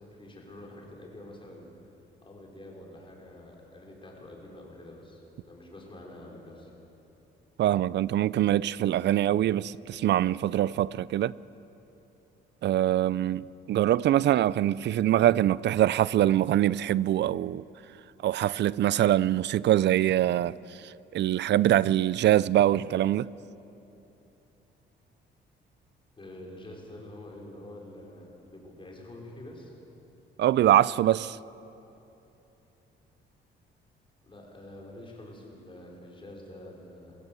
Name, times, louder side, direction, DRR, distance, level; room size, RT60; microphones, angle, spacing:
voice 1, 0.0-1.7 2.2-6.7 26.2-29.7 34.2-37.2, left 1 dB, 25° left, 5.4 m, -47 dB
voice 2, 7.6-11.3 12.6-17.6 18.2-23.3 30.4-31.4, right 12 dB, 60° right, 0.4 m, -24 dB
22.0 x 15.5 x 7.8 m
cardioid pair, 90°, 20 cm